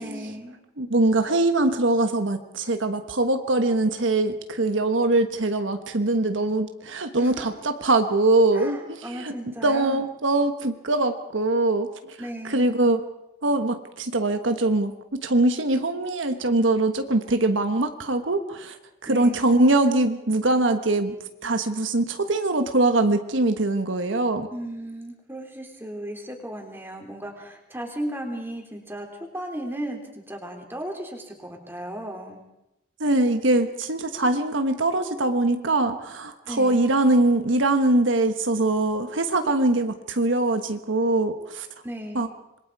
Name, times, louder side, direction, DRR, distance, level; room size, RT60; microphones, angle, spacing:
voice 1, 0.0-0.6 7.2-7.5 8.5-10.1 12.2-12.8 19.1-19.4 24.5-29.1 29.3-32.4 36.4-36.8 41.8-42.2, right 1 dB, 10° right, 2 dB, 3.5 m, -35 dB
voice 2, 0.8-12.2 12.4-13.0 13.4-21.2 21.4-24.5 33.0-41.7 42.1-42.3, right 2 dB, 70° right, 7 dB, 1.3 m, -22 dB
26.5 x 22.0 x 4.8 m, 0.90 s
head